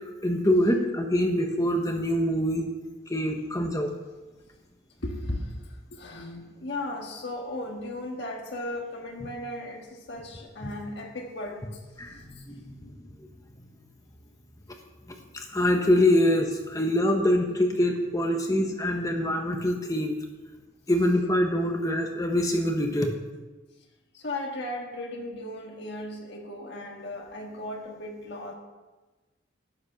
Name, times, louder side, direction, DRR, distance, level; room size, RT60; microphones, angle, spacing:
voice 1, 0.2-2.6 3.1-3.9 12.0-12.9 15.3-20.1 20.9-23.1, left 1 dB, 15° left, 3 dB, 1.0 m, -24 dB
voice 2, 5.0-5.5 5.9-11.6 24.1-28.5, left 1 dB, 60° left, 1 dB, 1.6 m, -36 dB
12.0 x 9.7 x 5.9 m, 1.2 s
head